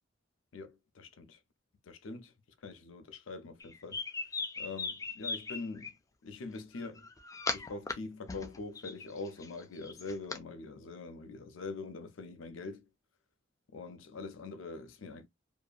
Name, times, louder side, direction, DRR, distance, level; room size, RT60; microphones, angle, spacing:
voice 1, 0.5-1.4 1.9-2.3 2.6-4.0 4.6-5.9 6.2-7.1 7.5-12.8 13.7-15.3, left 3 dB, 85° left, 0.5 m, -43 dB
sound 1, 3.6-5.9 6.8-7.9 8.3-10.4, left 4 dB, 15° left, 0.4 m, -38 dB
2.7 x 2.4 x 2.3 m
head